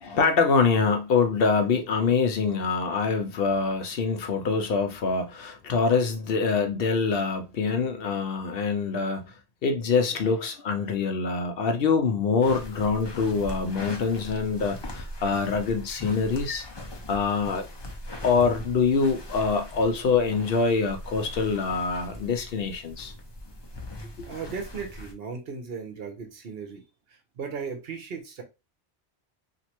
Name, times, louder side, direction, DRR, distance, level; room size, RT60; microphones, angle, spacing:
voice 1, 0.0-9.3 9.6-16.7 17.1-17.6 18.2-23.1 24.2-24.3, left 5 dB, 65° left, 0.7 m, -25 dB
sound 1, 12.4-25.1, left 1 dB, 35° left, 0.4 m, -40 dB
voice 2, 24.2-28.4, right 5 dB, 65° right, 0.9 m, -37 dB
3.0 x 2.5 x 2.8 m
omnidirectional pair, 1.1 m